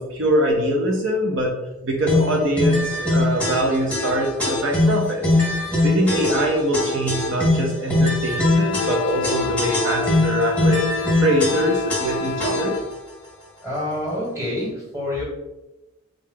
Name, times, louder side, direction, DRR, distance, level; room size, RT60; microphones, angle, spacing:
voice 1, 0.0-1.5 1.8-5.4 5.8-10.8 11.2-12.8, right 1 dB, 65° right, 0 dB, 0.5 m, -23 dB
sound 1, 2.1-12.9, left 2 dB, 5° left, 0.7 m, -22 dB
Wind instrument woodwind instrument, 8.4-12.9, left 5 dB, 65° left, 0.3 m, -29 dB
voice 2, 13.6-15.2, left 1 dB, 15° right, -5 dB, 1.2 m, -27 dB
3.6 x 2.3 x 3.6 m, 1.0 s
head